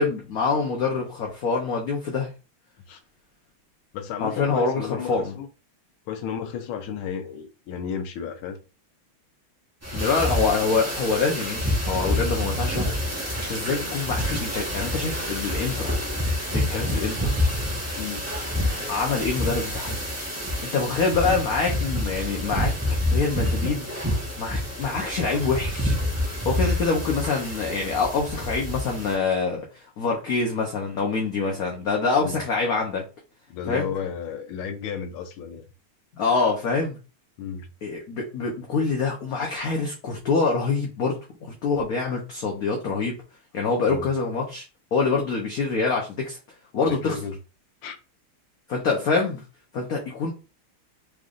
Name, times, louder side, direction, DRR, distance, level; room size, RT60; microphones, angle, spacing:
voice 1, 0.0-2.3 4.2-5.3 9.9-13.0 13.5-15.9 16.5-17.3 18.9-20.0 20.7-22.7 23.1-23.9 24.4-26.0 26.4-29.6 30.0-33.0 33.7-33.9 36.2-37.0 37.8-43.2 43.5-44.6 44.9-46.4 46.7-47.2 48.7-49.4 49.7-50.3, left 4 dB, 55° left, 1.1 m, -25 dB
voice 2, 3.9-5.5 6.1-8.6 10.0-10.1 10.5-10.6 13.8-14.0 18.0-18.3 32.2-32.4 33.5-35.7 37.4-37.7 43.9-44.1 46.9-47.4 47.8-48.0, left 7 dB, 85° left, 1.5 m, -33 dB
sound 1, 9.8-29.1, left 1 dB, 15° right, 0.7 m, -28 dB
4.9 x 3.3 x 2.5 m
omnidirectional pair, 2.3 m